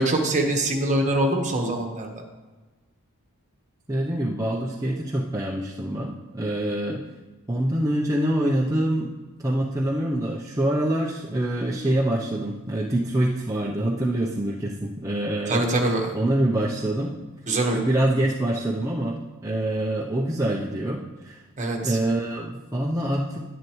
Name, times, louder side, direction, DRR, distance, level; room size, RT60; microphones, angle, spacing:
voice 1, 0.0-2.1 15.5-16.1 17.5-17.8 21.6-22.0, right 1 dB, 35° right, 2 dB, 1.4 m, -23 dB
voice 2, 3.9-7.1 7.5-9.1 9.4-15.7 16.1-17.1 17.7-21.4 21.8-23.4, right 1 dB, 15° right, -3 dB, 0.6 m, -25 dB
11.0 x 10.0 x 3.1 m, 1.2 s
head